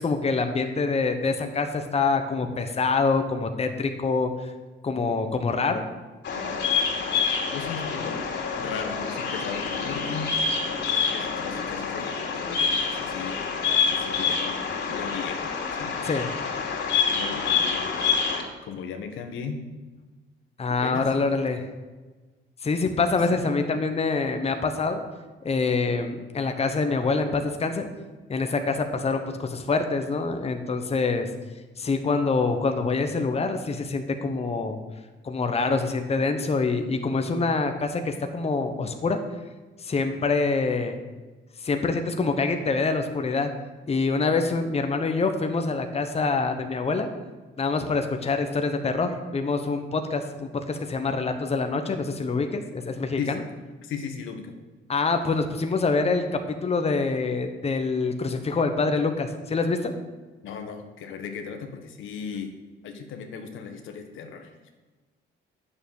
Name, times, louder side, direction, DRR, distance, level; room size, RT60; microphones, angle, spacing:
voice 1, 0.0-4.5 4.8-5.9 16.0-16.3 20.6-21.6 22.6-25.0 25.4-27.9 28.3-31.3 31.8-34.8 35.2-39.2 39.8-41.0 41.6-43.5 43.9-47.1 47.6-53.4 54.9-59.9, left 4 dB, 30° left, 6 dB, 1.1 m, -25 dB
Bird vocalization bird call bird song, 6.2-18.4, left 5 dB, 60° left, 2.8 m, -27 dB
voice 2, 7.5-8.2 8.6-10.3 10.9-13.5 13.9-15.9 17.0-18.2 18.6-19.6 20.8-21.1 23.3-23.4 53.2-53.4 53.8-54.5 60.4-62.5 62.8-64.7, left 6 dB, 85° left, 5 dB, 1.4 m, -36 dB
9.0 x 6.9 x 7.2 m, 1.3 s
cardioid pair, 90°, 20 cm